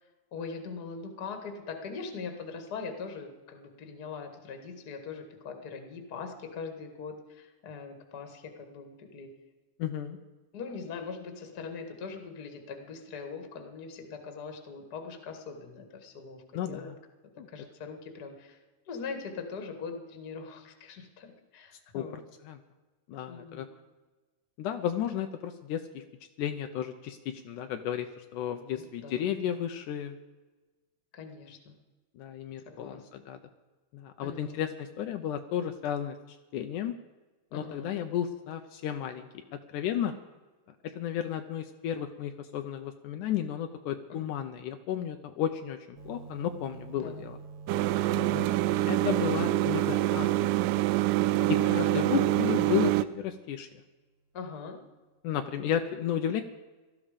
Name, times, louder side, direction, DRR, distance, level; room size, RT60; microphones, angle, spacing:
voice 1, 0.3-9.3 10.5-16.9 17.5-18.6 18.9-22.2 23.2-23.6 28.7-29.4 31.1-31.7 32.7-33.0 34.2-34.6 37.5-37.9 44.1-44.3 47.0-47.3 51.4-51.8 54.3-54.8, left 5 dB, 35° left, 6 dB, 1.8 m, -41 dB
voice 2, 9.8-10.2 16.5-17.0 17.4-17.5 21.9-22.0 22.5-22.6 23.1-23.7 24.6-26.0 26.4-30.2 32.2-33.4 33.9-36.9 37.5-39.4 39.7-40.1 41.0-47.4 48.1-48.5 48.9-50.3 51.7-53.7 55.2-56.4, left 10 dB, 75° left, 7 dB, 2.1 m, -33 dB
sound 1, 45.9-53.0, right 5 dB, 55° right, 2.1 m, -46 dB
sound 2, 47.7-53.0, right 15 dB, 80° right, 2.1 m, -26 dB
18.0 x 13.5 x 5.1 m, 1.2 s
omnidirectional pair, 3.8 m